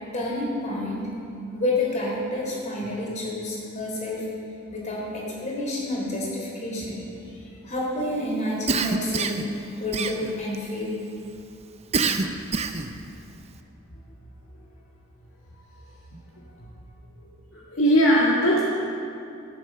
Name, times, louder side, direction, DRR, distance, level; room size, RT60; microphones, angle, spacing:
voice 1, 0.1-1.0 1.5-4.3 4.7-7.0 7.6-9.5 9.8-11.0, left 1 dB, 35° left, -3 dB, 3.5 m, -29 dB
Cough, 8.7-9.5 9.9-10.6 11.9-12.9, right 4 dB, 30° right, 0.6 m, -25 dB
voice 2, 17.5-18.6, equal, 65° left, -5 dB, 1.8 m, -19 dB
13.5 x 8.7 x 6.8 m, 2.6 s
head